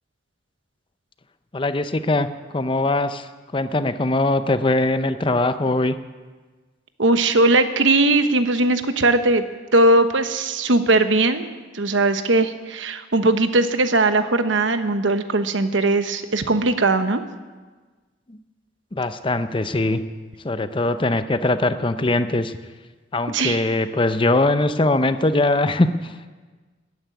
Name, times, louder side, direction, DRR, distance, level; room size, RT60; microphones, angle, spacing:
voice 1, 1.5-2.3 2.5-6.0 18.3-18.4 18.9-20.0 20.4-22.5 23.1-26.3, left 2 dB, 25° left, 11 dB, 0.6 m, -21 dB
voice 2, 7.0-9.4 9.7-17.2 23.3-23.6, right 2 dB, 75° right, 10 dB, 1.0 m, -19 dB
14.0 x 9.6 x 9.6 m, 1.3 s
head